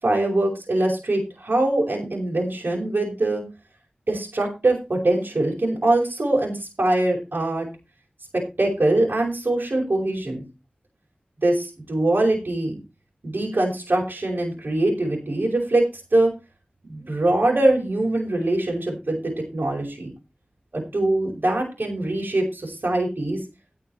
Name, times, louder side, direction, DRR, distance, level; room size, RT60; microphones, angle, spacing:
voice 1, 0.0-3.4 4.1-7.7 8.3-10.4 11.4-12.8 13.2-16.3 16.9-20.1 20.7-23.4, right 2 dB, 75° right, -2 dB, 5.3 m, -23 dB
17.0 x 6.7 x 4.4 m, 0.28 s
wide cardioid pair, 50°, 3 cm